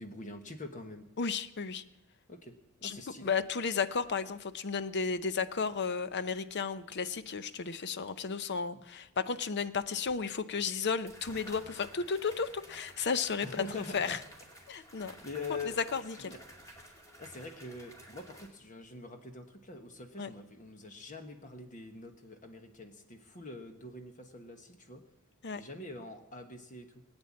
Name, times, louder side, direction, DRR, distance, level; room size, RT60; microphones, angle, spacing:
voice 1, 0.0-1.1 2.3-3.3 13.4-14.2 14.8-14.9 15.2-15.9 16.1-16.4 17.2-25.1 25.6-27.0, left 3 dB, 35° left, 6 dB, 1.3 m, -44 dB
voice 2, 1.2-1.8 2.8-13.6 13.9-14.2 14.7-15.1 15.9-16.3 20.2-20.3 25.4-25.6, left 5 dB, 50° left, 13 dB, 0.7 m, -33 dB
sound 1, 10.1-10.2 11.1-18.5, equal, 15° left, 2.5 m, -53 dB
18.5 x 8.9 x 8.6 m, 0.88 s
head